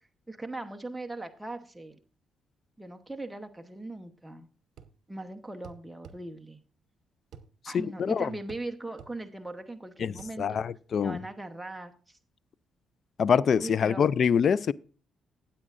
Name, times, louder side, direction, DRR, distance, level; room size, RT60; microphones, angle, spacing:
voice 1, 0.3-2.0 2.8-4.5 5.1-6.6 7.7-10.6 11.0-12.2 13.6-14.1, right 2 dB, 5° right, 1.0 m, -40 dB
sound 1, 4.8-5.0 5.6-6.2 7.3-7.5 8.5-8.7 9.0-9.2 10.2-10.4, right 7 dB, 70° right, 1.0 m, -48 dB
voice 2, 7.7-8.3 10.0-11.2 13.2-14.7, left 7 dB, 55° left, 0.4 m, -25 dB
15.5 x 8.6 x 2.5 m
cardioid pair, 90°, 0 cm